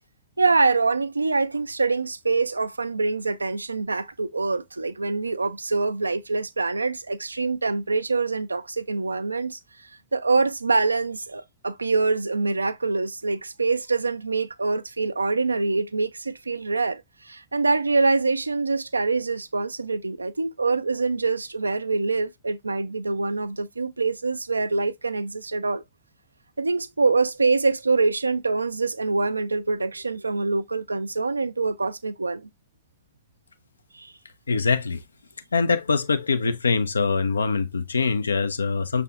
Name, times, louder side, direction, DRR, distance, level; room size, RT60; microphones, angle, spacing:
voice 1, 0.4-25.8 26.6-32.5 33.9-34.1, right 3 dB, 80° right, 0.3 m, -25 dB
voice 2, 34.5-35.0 35.5-39.0, left 4 dB, 75° left, 0.4 m, -23 dB
5.8 x 3.4 x 2.3 m
figure-of-eight pair, 90°, 0 cm